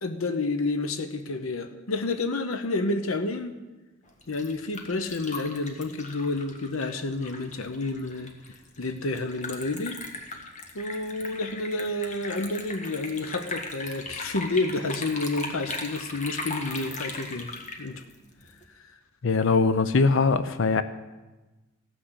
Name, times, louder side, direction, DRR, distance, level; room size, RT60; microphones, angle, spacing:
voice 1, 0.0-3.5 4.3-8.3 8.8-10.0 10.7-18.0, left 2 dB, 80° left, 8 dB, 0.9 m, -30 dB
Liquid, 4.1-18.6, left 3 dB, 35° left, 1.6 m, -38 dB
voice 2, 19.2-20.8, left 4 dB, 65° left, 12 dB, 0.6 m, -21 dB
15.0 x 6.2 x 8.1 m, 1.1 s
head